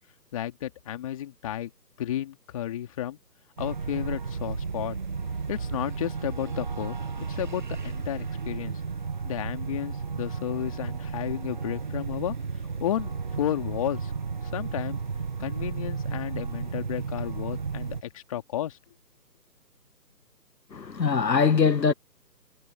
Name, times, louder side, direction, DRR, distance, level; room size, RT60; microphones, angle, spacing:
voice 1, 0.3-1.7 2.0-3.2 3.6-5.0 5.5-8.8 9.2-12.3 12.8-14.1 14.5-15.0 15.4-18.8, left 12 dB, 20° left, 2.5 m, -32 dB
sound 1, 3.6-18.0, right 5 dB, 30° right, 1.0 m, -33 dB
voice 2, 20.7-21.9, left 5 dB, 85° left, 1.4 m, -22 dB
figure-of-eight pair, 160°, 49 cm